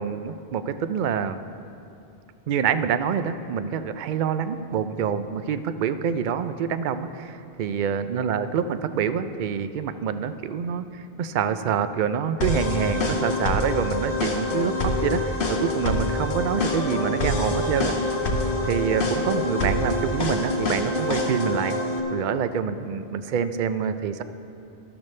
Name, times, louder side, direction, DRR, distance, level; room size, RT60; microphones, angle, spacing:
voice 1, 0.0-1.4 2.5-17.9 18.6-21.8 22.1-24.2, right 7 dB, 60° right, 11 dB, 0.6 m, -26 dB
sound 1, 12.4-22.0, left 2 dB, 60° left, 1.1 m, -26 dB
13.0 x 12.0 x 3.2 m, 2.6 s
omnidirectional pair, 1.0 m